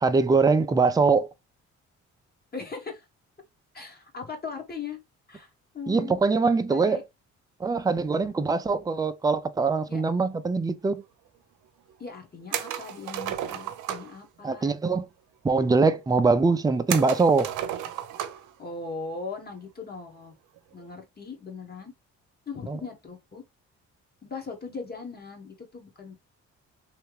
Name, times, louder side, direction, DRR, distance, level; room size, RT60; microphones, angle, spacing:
voice 1, 0.0-1.3 5.9-7.0 7.6-11.0 14.4-15.1 15.4-17.5 22.7-22.8, right 4 dB, 15° right, 0.4 m, -23 dB
voice 2, 2.5-3.1 3.7-5.0 5.3-6.2 6.7-7.0 9.9-10.0 12.0-14.7 18.6-20.3 20.7-21.9 22.5-23.4 24.2-26.3, left 4 dB, 30° left, 1.4 m, -39 dB
sound 1, 12.5-14.2 16.9-18.5 18.9-19.0 20.6-20.9, right 11 dB, 90° right, 0.6 m, -33 dB
3.3 x 2.9 x 3.2 m
cardioid pair, 90°, 30 cm